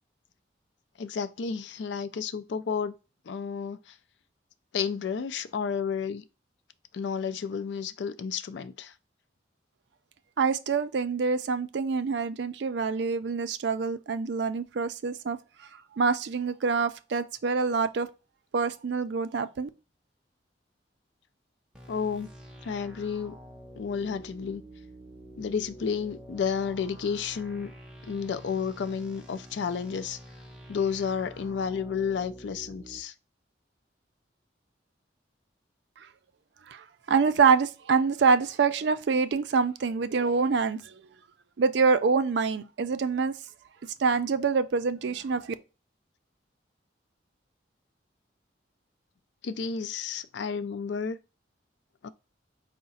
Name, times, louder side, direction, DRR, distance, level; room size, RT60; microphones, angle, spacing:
voice 1, 1.0-2.9 3.3-3.8 4.7-6.2 6.9-8.9 21.9-22.3 22.6-23.3 23.8-24.6 25.4-27.7 28.0-30.2 30.7-33.1 49.4-51.2 52.0-52.1, left 6 dB, 75° left, 0.4 m, -31 dB
voice 2, 10.4-15.4 16.0-18.1 18.5-19.7 36.7-41.0 41.6-43.3 44.0-45.5, right 5 dB, 70° right, 0.4 m, -26 dB
sound 1, 21.7-33.0, equal, 5° right, 0.5 m, -48 dB
4.7 x 2.1 x 3.9 m
head